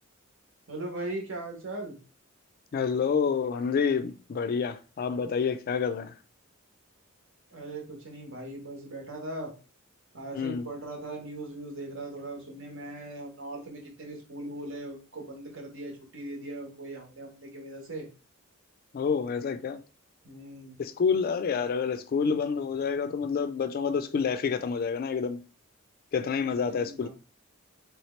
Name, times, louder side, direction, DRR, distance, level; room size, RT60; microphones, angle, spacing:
voice 1, 0.7-2.0 7.5-9.5 10.1-18.1 20.2-20.8 26.2-27.1, right 2 dB, 65° right, 1.1 m, -39 dB
voice 2, 2.7-6.1 10.3-10.7 18.9-19.8 20.8-25.4 26.1-27.1, left 6 dB, 45° left, 0.3 m, -28 dB
3.4 x 2.9 x 3.1 m
head